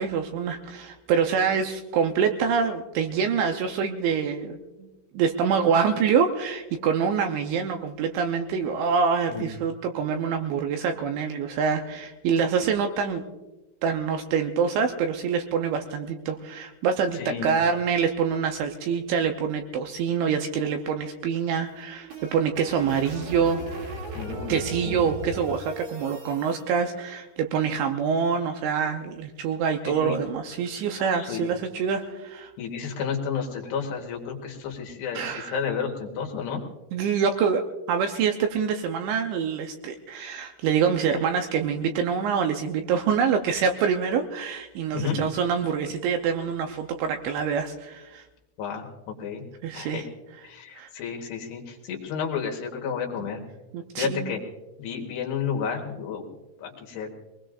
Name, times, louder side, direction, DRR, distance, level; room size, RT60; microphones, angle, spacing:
voice 1, 0.0-4.9 5.1-13.2 13.8-23.6 24.5-32.5 35.1-35.6 36.9-48.3 49.6-50.0 50.7-50.9 53.7-54.3, right 6 dB, 80° right, 5 dB, 2.8 m, -26 dB
voice 2, 17.1-17.5 24.1-24.6 24.8-25.0 29.8-30.2 31.0-31.5 32.6-36.6 44.9-45.2 48.6-49.4 49.7-50.0 50.4-53.4 54.0-54.4 54.8-56.3 56.6-57.1, left 6 dB, 65° left, 1 dB, 3.1 m, -31 dB
sound 1, 21.7-26.6, right 2 dB, 65° right, 4.2 m, -37 dB
23.0 x 20.0 x 2.5 m, 1.1 s
omnidirectional pair, 5.9 m